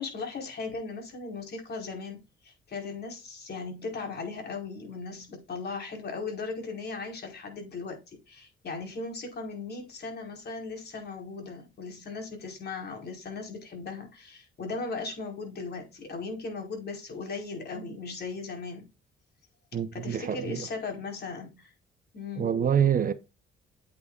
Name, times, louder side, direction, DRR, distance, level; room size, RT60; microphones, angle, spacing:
voice 1, 0.0-18.9 19.9-21.7 22.1-22.5, left 4 dB, 55° left, 4.7 m, -37 dB
voice 2, 19.7-20.7 22.4-23.1, right 8 dB, 45° right, 0.9 m, -26 dB
9.0 x 8.8 x 2.5 m
cardioid pair, 90°, 20 cm